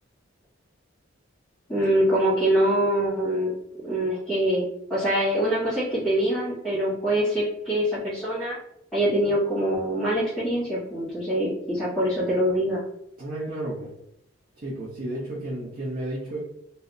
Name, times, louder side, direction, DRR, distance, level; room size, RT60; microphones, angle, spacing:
voice 1, 1.7-3.5 3.8-4.6 4.9-8.6 8.9-12.8, right 1 dB, 5° left, -12 dB, 1.2 m, -24 dB
voice 2, 13.2-13.9 14.5-16.4, right 1 dB, 45° right, -6 dB, 0.7 m, -32 dB
2.7 x 2.0 x 3.7 m, 0.75 s
head